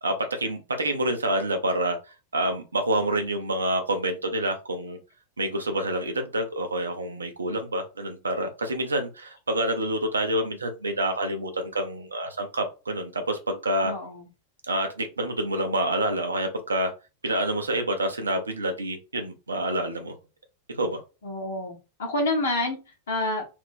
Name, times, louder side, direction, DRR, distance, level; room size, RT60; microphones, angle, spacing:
voice 1, 0.0-2.0 2.3-5.0 5.4-13.9 14.7-16.9 17.2-20.1 20.8-21.0, right 1 dB, 75° right, 5 dB, 0.7 m, -27 dB
voice 2, 13.8-14.3 21.2-23.4, left 2 dB, 60° left, 1 dB, 0.9 m, -28 dB
2.6 x 2.4 x 3.6 m, 0.29 s
figure-of-eight pair, 90°, 0 cm